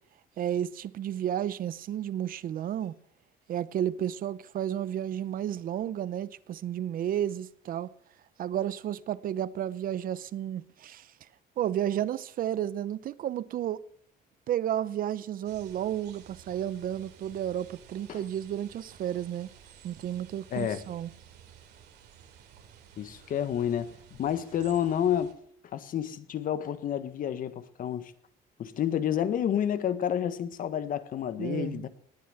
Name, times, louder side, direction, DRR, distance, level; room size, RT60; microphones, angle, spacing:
voice 1, 0.4-2.9 3.5-7.9 8.4-11.1 11.6-13.8 14.5-19.5 19.8-21.1 31.4-31.8, right 11 dB, 55° right, 0.8 m, -32 dB
sound 1, 15.4-25.3, right 8 dB, 75° right, 3.6 m, -54 dB
voice 2, 20.5-20.8 23.0-25.3 25.7-28.1 28.6-31.9, left 9 dB, 55° left, 1.5 m, -30 dB
19.5 x 9.3 x 7.9 m
cardioid pair, 110°, 17 cm